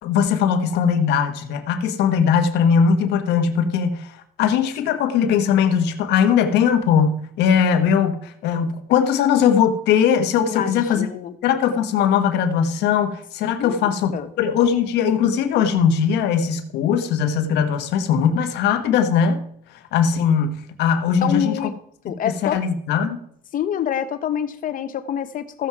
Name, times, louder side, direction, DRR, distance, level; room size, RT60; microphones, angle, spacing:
voice 1, 0.0-11.1 11.4-14.1 14.4-19.4 19.9-21.7 22.1-23.2, left 7 dB, 85° left, 9 dB, 1.3 m, -20 dB
voice 2, 10.5-11.3 13.6-13.8 14.1-14.3 21.2-21.7 22.0-22.6 23.5-25.7, left 9 dB, 55° left, 11 dB, 1.0 m, -26 dB
14.5 x 7.6 x 4.7 m, 0.68 s
cardioid pair, 110°, 17 cm